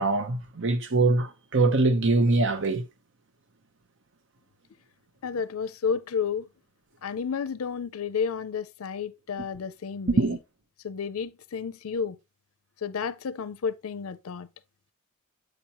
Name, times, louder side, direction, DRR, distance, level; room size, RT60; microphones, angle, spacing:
voice 1, 0.0-2.8 10.1-10.4, right 3 dB, 60° right, 0.9 m, -23 dB
voice 2, 5.2-6.5 7.0-10.4 10.8-12.2 12.8-14.5, left 6 dB, 70° left, 0.5 m, -31 dB
8.4 x 5.2 x 2.9 m
head